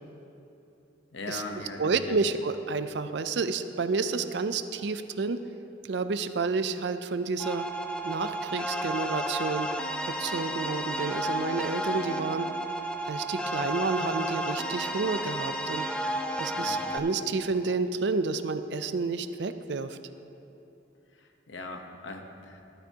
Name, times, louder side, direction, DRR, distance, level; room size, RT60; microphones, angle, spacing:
voice 1, 1.1-2.2 16.5-16.8 21.5-22.6, left 2 dB, 80° left, 4 dB, 1.0 m, -39 dB
voice 2, 1.8-5.4 5.9-7.7 8.0-9.7 10.1-12.5 13.1-15.9 16.4-20.0, right 4 dB, 65° right, 10 dB, 0.4 m, -30 dB
sound 1, 7.4-17.0, right 1 dB, 5° left, 0.4 m, -32 dB
12.5 x 12.5 x 2.9 m, 2.8 s
head